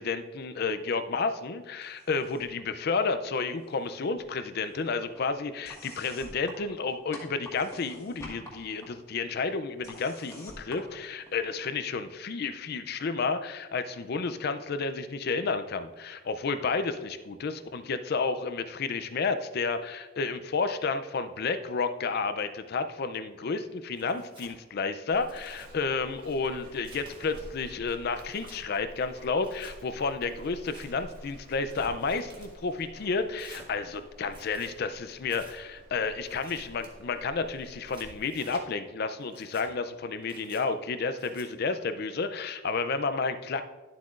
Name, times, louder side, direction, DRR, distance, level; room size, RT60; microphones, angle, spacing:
voice 1, 0.0-43.6, left 4 dB, 50° left, 10 dB, 0.4 m, -31 dB
sound 1, 1.8-2.6 2.9-3.9 4.2-11.7, left 1 dB, 15° left, 1.6 m, -49 dB
Tearing, 24.0-24.5 25.1-25.7 26.3-27.4 27.9-28.6 29.4-29.8 30.5-30.9 31.5-32.5 33.3-33.7 34.2-34.7 35.3-35.6 36.2-36.9 37.6-38.6 39.2-39.7 40.2-40.6 41.2-41.5, right 2 dB, 25° right, 1.5 m, -52 dB
Run, 25.1-38.2, equal, 45° right, 1.7 m, -50 dB
11.5 x 7.6 x 2.5 m, 1.2 s
head